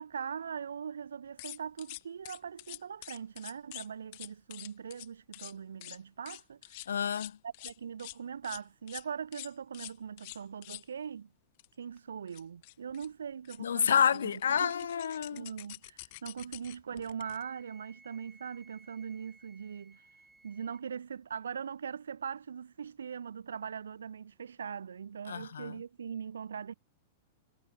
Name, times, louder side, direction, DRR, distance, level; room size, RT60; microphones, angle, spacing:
voice 1, 0.0-6.9 7.4-11.3 11.8-14.7 15.3-20.0 20.4-26.7, right 7 dB, 85° right, 2.4 m, -41 dB
sound 1, 1.4-3.9 4.1-5.1 5.3-5.5 5.8-6.0 6.3-8.2 8.4-8.6 8.9-9.0 9.3-10.8 11.6-11.7 12.0-12.1 12.3-13.1 13.4-13.6 13.9-17.4, left 22 dB, 55° left, 2.4 m, -46 dB
voice 2, 6.9-7.4 13.6-15.5 25.3-25.7, left 8 dB, 85° left, 0.6 m, -29 dB
Wind instrument woodwind instrument, 17.2-20.9, right 3 dB, 10° right, 6.8 m, -60 dB
hypercardioid pair, 115°, 0 cm